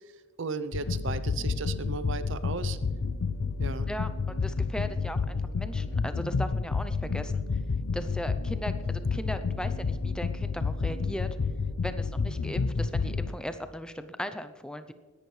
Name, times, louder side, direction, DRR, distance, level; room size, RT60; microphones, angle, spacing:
voice 1, 0.4-2.8 3.6-3.9, right 4 dB, 55° right, 13 dB, 0.6 m, -35 dB
sound 1, 0.7-13.3, left 4 dB, 75° left, 0.5 m, -30 dB
voice 2, 3.9-7.4 7.9-11.3 11.8-14.9, equal, 5° left, 10 dB, 0.5 m, -38 dB
20.5 x 11.0 x 3.2 m, 1.5 s
head